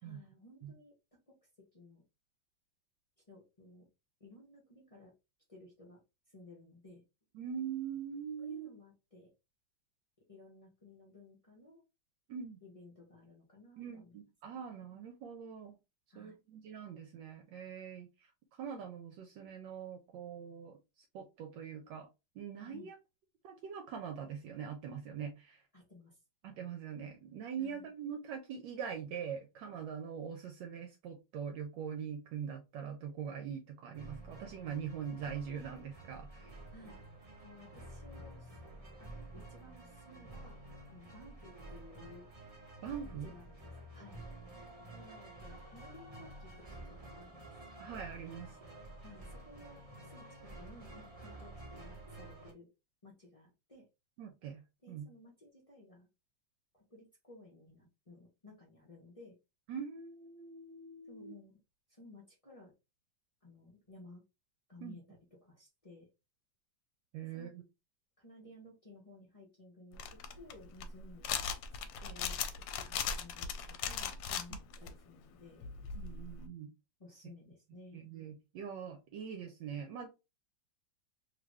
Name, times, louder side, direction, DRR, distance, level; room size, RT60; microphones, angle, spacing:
voice 1, 0.0-0.9 1.3-2.0 3.3-3.9 4.2-5.1 5.5-6.0 6.3-7.0 8.4-9.3 10.3-11.8 12.6-14.2 14.5-14.6 16.1-16.4 22.7-22.9 25.7-26.2 27.6-27.9 36.7-37.0 37.4-38.6 39.0-40.6 40.9-42.3 43.0-44.3 44.9-48.0 49.0-52.7 53.0-53.8 54.8-56.1 56.7-59.4 61.0-61.6 61.9-62.7 63.4-64.2 64.7-66.1 67.2-67.5 68.2-75.7 77.0-78.1, left 2 dB, 30° left, 0.6 m, -57 dB
voice 2, 7.3-8.7 12.3-12.6 13.8-15.8 16.2-18.1 18.6-20.8 21.1-22.1 22.4-23.0 23.4-25.6 26.4-36.5 42.8-43.3 47.8-48.6 54.2-54.6 54.9-55.1 59.7-61.3 64.8-65.0 67.1-67.6 76.0-76.7 77.9-80.1, right 7 dB, 80° right, 1.3 m, -43 dB
sound 1, 33.9-52.5, right 1 dB, 30° right, 0.7 m, -50 dB
sound 2, 69.9-74.9 75.6-76.5, left 7 dB, 75° left, 1.2 m, -38 dB
3.0 x 2.5 x 3.3 m
omnidirectional pair, 2.0 m